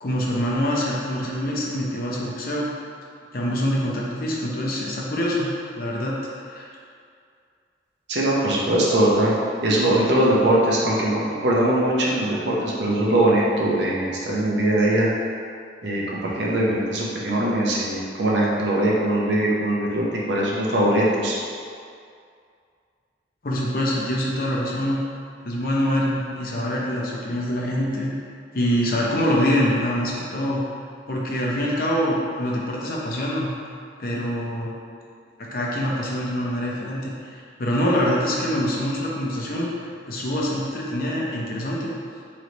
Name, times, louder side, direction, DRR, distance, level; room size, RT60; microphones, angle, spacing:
voice 1, 0.0-2.7 3.3-5.5 5.8-6.1 6.5-6.7 23.4-25.0 25.4-28.1 28.5-30.6 31.1-33.5 34.0-34.7 35.5-39.7 40.1-41.9, equal, 50° left, -4 dB, 0.6 m, -25 dB
voice 2, 8.1-9.3 9.6-15.1 15.8-16.0 16.4-21.4, right 1 dB, 75° right, -4 dB, 0.8 m, -21 dB
3.2 x 3.1 x 3.9 m, 2.3 s
head